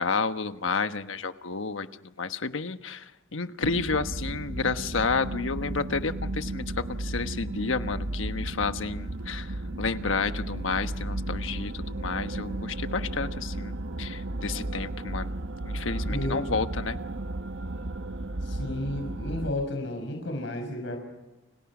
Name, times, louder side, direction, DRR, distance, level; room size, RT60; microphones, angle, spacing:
voice 1, 0.0-1.9 2.2-3.0 3.3-15.3 15.6-17.0, left 4 dB, 85° left, 10 dB, 1.2 m, -30 dB
sound 1, 3.6-19.5, right 1 dB, 85° right, 1.1 m, -34 dB
voice 2, 16.0-16.6 18.4-21.0, left 1 dB, 70° left, 4 dB, 5.9 m, -32 dB
30.0 x 28.5 x 6.2 m, 1.0 s
head